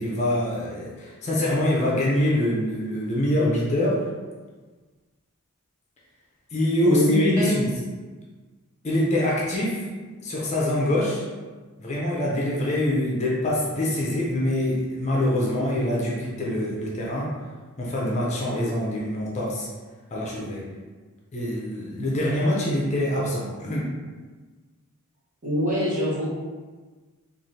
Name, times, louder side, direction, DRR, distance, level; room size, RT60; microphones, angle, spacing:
voice 1, 0.0-4.1 6.5-7.7 8.8-9.8 10.2-11.2 11.8-17.3 17.8-19.7 20.1-20.7 21.3-23.9, left 1 dB, 30° left, -4 dB, 0.5 m, -24 dB
voice 2, 6.8-7.7 25.4-26.3, equal, 35° right, -7 dB, 0.9 m, -23 dB
3.1 x 2.4 x 2.7 m, 1.4 s
head